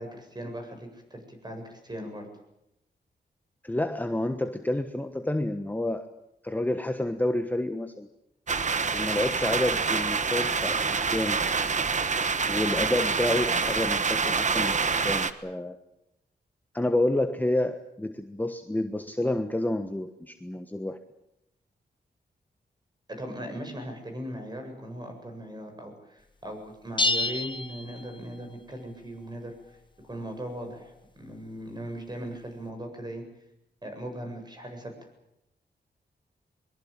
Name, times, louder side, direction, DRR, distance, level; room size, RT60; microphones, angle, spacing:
voice 1, 0.0-2.3 23.1-29.8 30.1-33.2 33.8-34.9, equal, 25° right, 4 dB, 7.8 m, -39 dB
voice 2, 3.6-6.1 6.4-8.1 8.9-11.4 12.5-15.8 16.7-21.0, left 1 dB, 10° left, 7 dB, 1.3 m, -29 dB
sound 1, 8.5-15.3, right 5 dB, 45° right, 1.4 m, -26 dB
sound 2, 27.0-28.6, left 2 dB, 30° left, 1.3 m, -29 dB
22.5 x 22.5 x 8.9 m, 0.85 s
wide cardioid pair, 110°, 17 cm